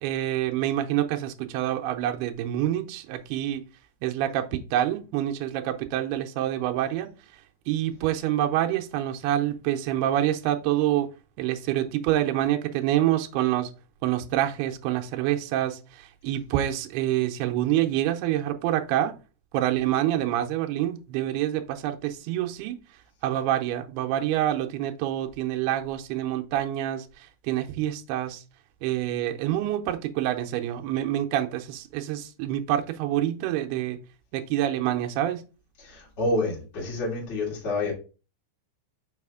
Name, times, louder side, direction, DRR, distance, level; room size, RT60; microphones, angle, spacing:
voice 1, 0.0-3.6 4.0-7.1 7.7-11.1 11.4-13.7 14.0-19.2 19.5-22.8 23.2-28.4 28.8-34.0 34.3-35.4, right 12 dB, 85° right, 2.6 m, -27 dB
voice 2, 35.8-37.9, left 2 dB, 30° left, 2.7 m, -28 dB
6.2 x 4.9 x 3.6 m
omnidirectional pair, 4.6 m